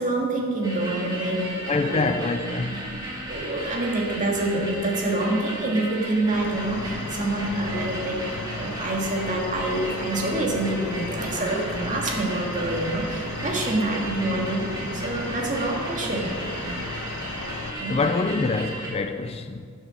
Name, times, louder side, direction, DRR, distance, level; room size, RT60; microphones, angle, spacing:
voice 1, 0.0-2.2 2.6-2.9 3.3-16.9 17.8-18.0, right 2 dB, 35° right, 1.9 m, -27 dB
sound 1, 0.6-18.9, right 1 dB, 20° right, 2.5 m, -35 dB
voice 2, 1.7-2.8 17.9-19.7, left 3 dB, 30° left, 0.4 m, -25 dB
Cricket, 6.3-17.7, left 2 dB, 85° left, 1.1 m, -35 dB
11.0 x 6.5 x 6.3 m
head